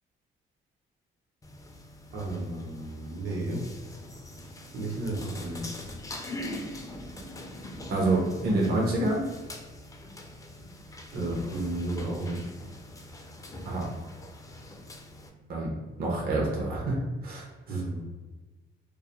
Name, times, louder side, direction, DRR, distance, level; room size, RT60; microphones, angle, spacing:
sound 1, 1.4-15.3, left 1 dB, 15° left, 0.3 m, -43 dB
voice 1, 2.1-3.6 4.7-5.7 11.1-12.5 17.7-18.0, right 2 dB, 80° right, -4 dB, 0.9 m, -33 dB
voice 2, 7.9-9.3 13.6-13.9 15.5-15.7 16.0-16.9 17.2-17.8, right 2 dB, 50° right, -3 dB, 0.6 m, -27 dB
2.3 x 2.1 x 2.9 m, 1.3 s
cardioid pair, 90°, 20 cm